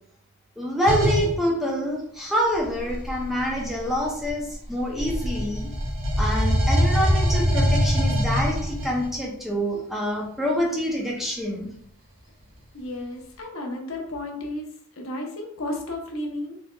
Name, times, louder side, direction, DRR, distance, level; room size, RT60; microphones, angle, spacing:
voice 1, 0.6-5.7 6.2-11.7, equal, ahead, -3 dB, 0.4 m, -26 dB
sound 1, 0.8-1.3 2.6-4.5 4.9-9.1, equal, 70° right, 1.0 m, -23 dB
voice 2, 12.7-14.7 15.0-16.6, left 1 dB, 70° left, 1 dB, 0.7 m, -33 dB
3.6 x 2.8 x 2.2 m, 0.66 s
head